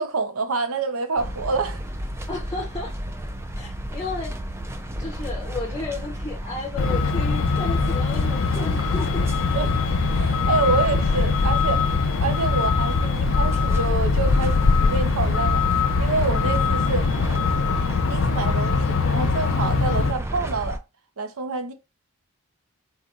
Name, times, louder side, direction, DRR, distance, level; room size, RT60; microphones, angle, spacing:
voice 1, 0.0-1.8 9.5-9.8 10.1-17.1 18.1-20.8 21.2-21.7, right 4 dB, 75° right, 0.7 m, -27 dB
sound 1, 1.2-20.8, equal, 10° right, 0.3 m, -32 dB
voice 2, 2.3-3.0 3.5-4.4 5.0-9.3 11.1-11.2 20.0-20.1, left 3 dB, 15° left, 0.6 m, -33 dB
Truck, 6.8-20.1, left 4 dB, 60° left, 0.4 m, -22 dB
4.0 x 4.0 x 2.4 m
head